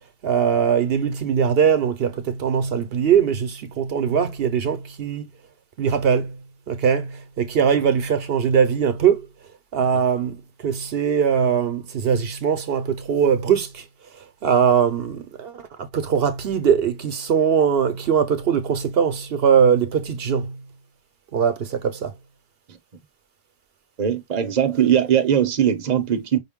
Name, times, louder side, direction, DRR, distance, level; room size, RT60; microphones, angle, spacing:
voice 1, 0.2-5.3 5.8-6.4 6.7-9.2 9.7-13.8 14.4-20.6 21.3-22.1, right 7 dB, 70° right, 0.9 m, -21 dB
voice 2, 24.0-26.4, right 9 dB, 45° right, 0.7 m, -20 dB
5.4 x 2.2 x 3.5 m
omnidirectional pair, 1.1 m